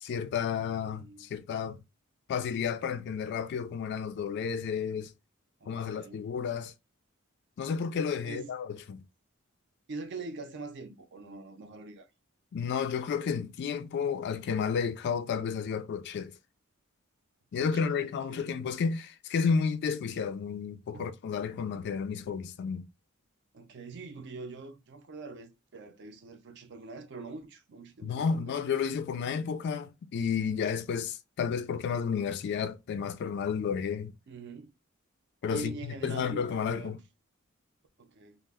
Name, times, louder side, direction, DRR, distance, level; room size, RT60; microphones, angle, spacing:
voice 1, 0.0-1.8 2.3-5.1 5.7-6.7 7.6-9.0 12.5-16.3 17.5-22.8 28.0-34.2 35.4-37.0, left 6 dB, 55° left, 0.3 m, -32 dB
voice 2, 0.6-1.3 5.6-6.2 8.2-8.5 9.9-12.1 17.6-18.6 20.9-21.1 23.5-28.5 34.3-34.7 35.5-37.0 38.0-38.4, right 3 dB, 55° right, 0.5 m, -44 dB
2.1 x 2.0 x 3.3 m
head